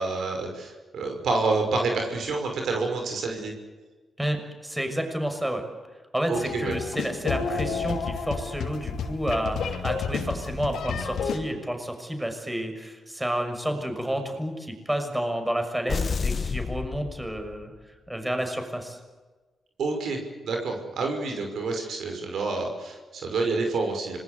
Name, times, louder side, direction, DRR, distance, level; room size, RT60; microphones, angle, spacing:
voice 1, 0.0-3.5 6.3-6.8 19.8-20.2 20.4-24.2, right 3 dB, 75° right, 3 dB, 5.8 m, -28 dB
voice 2, 4.2-5.6 6.1-17.7 18.1-19.0, right 1 dB, 10° right, 5 dB, 6.2 m, -30 dB
sound 1, 6.3-11.4, left 6 dB, 80° left, 3.0 m, -31 dB
sound 2, 15.9-17.8, left 5 dB, 50° left, 0.7 m, -30 dB
26.5 x 21.0 x 8.3 m, 1.3 s
supercardioid pair, 55°, 0 cm